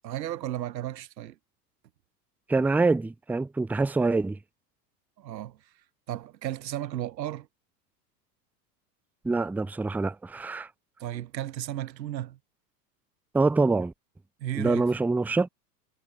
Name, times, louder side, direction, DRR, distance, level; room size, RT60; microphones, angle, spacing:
voice 1, 0.0-1.4 5.2-5.7 6.1-7.5 11.0-12.4 14.4-14.9, right 13 dB, 85° right, 1.1 m, -34 dB
voice 2, 2.5-4.4 9.2-10.7 13.3-13.9 14.5-15.5, right 3 dB, 5° right, 0.6 m, -25 dB
hypercardioid pair, 105°, 49 cm